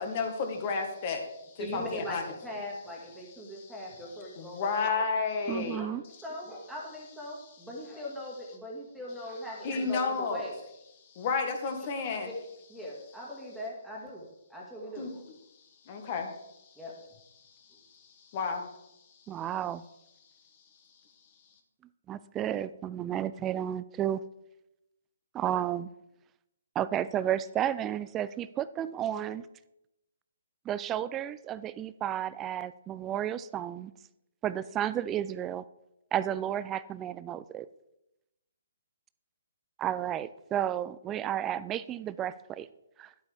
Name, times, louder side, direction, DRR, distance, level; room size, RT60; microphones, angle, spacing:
voice 1, 0.0-2.2 3.5-3.8 4.4-5.8 9.6-10.4 11.2-12.3 15.0-15.1 15.9-16.3 18.3-18.7, left 4 dB, 35° left, 4 dB, 1.6 m, -31 dB
voice 2, 1.6-4.9 5.8-5.9 6.2-10.6 11.8-11.9 12.2-12.3 12.7-14.2 14.5-15.2 16.8-16.9, equal, ahead, -5 dB, 2.1 m, -40 dB
voice 3, 5.5-6.0 19.3-19.8 22.1-24.2 25.3-25.9 26.8-29.4 30.7-33.9 34.4-35.6 36.1-37.7 39.8-42.7 43.0-43.1, right 11 dB, 15° right, 16 dB, 0.3 m, -32 dB
11.5 x 8.0 x 3.5 m, 0.88 s
hypercardioid pair, 150°, 0 cm